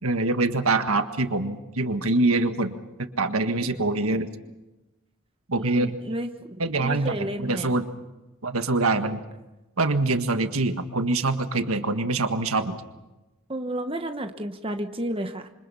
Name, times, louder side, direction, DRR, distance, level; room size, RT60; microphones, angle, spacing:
voice 1, 0.0-4.3 5.5-6.0 6.6-7.9 8.4-9.2 9.8-12.8, right 2 dB, 85° right, 7 dB, 1.7 m, -24 dB
voice 2, 5.6-7.7 13.5-15.5, right 1 dB, 25° right, 6 dB, 1.1 m, -32 dB
27.5 x 25.0 x 5.7 m, 1.0 s
head